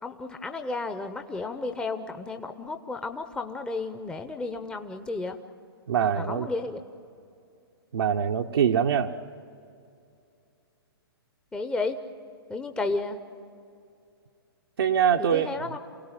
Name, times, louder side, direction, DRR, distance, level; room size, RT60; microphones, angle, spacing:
voice 1, 0.0-5.4 6.2-6.8 11.5-12.0 12.5-13.2 15.2-15.8, left 3 dB, 5° left, 7 dB, 0.8 m, -32 dB
voice 2, 5.9-6.5 7.9-9.2 14.8-15.6, right 8 dB, 70° right, 2 dB, 0.9 m, -24 dB
28.5 x 17.5 x 8.9 m, 2.5 s
hypercardioid pair, 125°, 13 cm